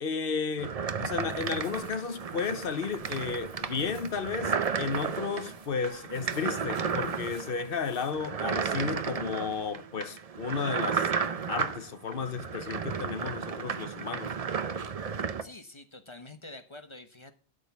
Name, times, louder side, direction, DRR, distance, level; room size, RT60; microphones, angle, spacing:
voice 1, 0.0-11.2 11.5-14.3, left 5 dB, 55° left, 1.0 m, -33 dB
sound 1, 0.6-15.4, right 6 dB, 40° right, 0.6 m, -33 dB
sound 2, 1.2-8.1, right 1 dB, 65° right, 6.8 m, -59 dB
voice 2, 15.4-17.3, left 2 dB, 25° left, 1.0 m, -47 dB
12.5 x 5.2 x 8.0 m
omnidirectional pair, 1.1 m